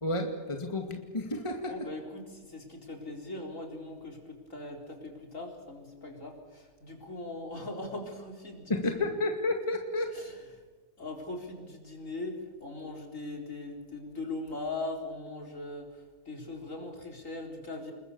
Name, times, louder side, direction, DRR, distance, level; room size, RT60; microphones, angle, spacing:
voice 1, 0.0-1.8 8.7-10.2, left 2 dB, 20° left, 3 dB, 2.3 m, -31 dB
voice 2, 1.6-8.7 10.1-10.6 11.0-17.9, left 2 dB, 55° left, 2 dB, 4.7 m, -40 dB
28.0 x 22.0 x 7.0 m, 1.3 s
omnidirectional pair, 1.6 m